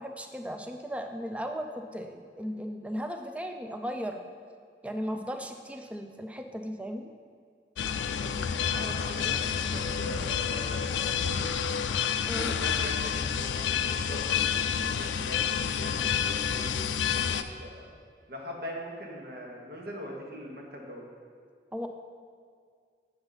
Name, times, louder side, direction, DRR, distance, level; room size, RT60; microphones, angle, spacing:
voice 1, 0.0-4.3 4.8-7.1 12.2-12.5 21.7-21.9, equal, 5° right, 5 dB, 0.4 m, -36 dB
sound 1, 7.8-17.4, left 7 dB, 90° left, 0.4 m, -29 dB
voice 2, 8.0-11.6 12.3-16.0 16.2-17.9 18.3-21.0, equal, 55° right, -1 dB, 1.3 m, -42 dB
7.8 x 7.2 x 4.0 m, 2.1 s
head